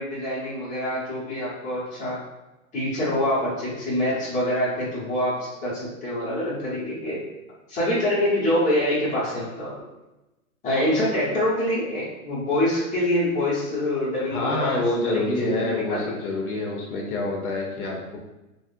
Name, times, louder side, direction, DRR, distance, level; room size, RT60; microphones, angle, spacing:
voice 1, 0.0-2.2 2.7-7.2 7.7-9.7 10.6-15.6 15.9-16.1, left 1 dB, 15° left, -8 dB, 1.1 m, -25 dB
voice 2, 14.3-18.2, left 2 dB, 85° left, -1 dB, 0.9 m, -27 dB
3.4 x 2.4 x 2.5 m, 1.0 s
hypercardioid pair, 130°, 43 cm